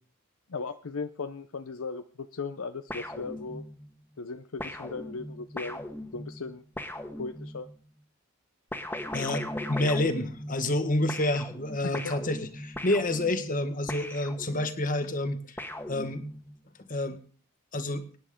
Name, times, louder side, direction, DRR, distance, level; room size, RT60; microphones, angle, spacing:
voice 1, 0.5-3.6 4.2-5.8 6.1-6.6 7.2-7.7 11.8-12.1, left 4 dB, 75° left, 10 dB, 0.7 m, -37 dB
sound 1, 2.9-3.9 4.6-7.8 8.7-10.8 11.1-14.8 15.6-16.6, left 1 dB, 10° left, 1.4 m, -38 dB
voice 2, 9.1-15.4 15.9-16.2 16.9-17.2 17.7-18.0, left 1 dB, 40° left, 9 dB, 1.5 m, -28 dB
24.0 x 10.5 x 3.7 m, 0.40 s
head